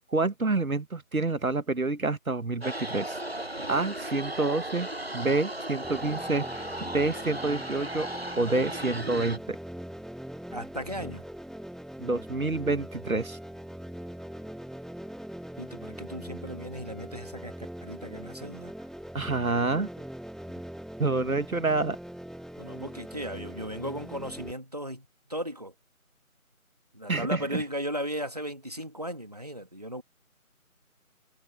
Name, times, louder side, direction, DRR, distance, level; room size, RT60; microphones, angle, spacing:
voice 1, 0.1-3.2 3.7-4.9 5.1-8.1 8.4-9.6 12.0-13.4 19.1-19.9 21.0-22.0 27.1-27.6, right 3 dB, 70° right, 1.7 m, -28 dB
sound 1, 2.6-9.4, right 1 dB, 45° right, 1.1 m, -36 dB
sound 2, 5.8-24.5, equal, ahead, 0.4 m, -42 dB
voice 2, 10.5-11.2 15.6-18.7 22.6-25.7 26.9-30.0, equal, 25° right, 2.4 m, -36 dB
figure-of-eight pair, 180°, 43 cm